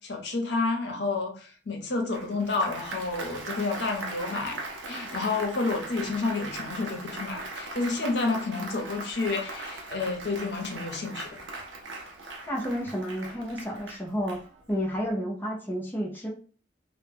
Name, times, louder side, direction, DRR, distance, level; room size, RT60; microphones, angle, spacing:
voice 1, 0.0-4.6 4.9-11.4, left 3 dB, 65° left, 2 dB, 0.6 m, -30 dB
Applause, 2.1-14.8, right 2 dB, 85° right, 0.5 m, -40 dB
voice 2, 12.5-14.4 14.7-16.3, equal, 10° left, -4 dB, 0.4 m, -31 dB
2.1 x 2.0 x 3.2 m, 0.40 s
head